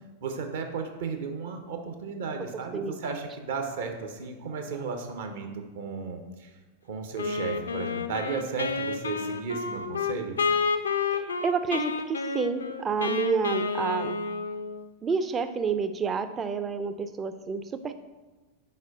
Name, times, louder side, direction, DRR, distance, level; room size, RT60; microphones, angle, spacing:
voice 1, 0.2-5.5 5.7-6.5 6.9-10.4, right 5 dB, 55° right, 4 dB, 0.7 m, -34 dB
voice 2, 2.7-3.1 11.1-14.2 15.0-17.9, right 5 dB, 20° right, 10 dB, 0.4 m, -29 dB
Wind instrument woodwind instrument, 7.2-14.9, left 4 dB, 70° left, 0.4 m, -30 dB
4.5 x 4.2 x 5.2 m, 1.2 s
figure-of-eight pair, 90°, 0 cm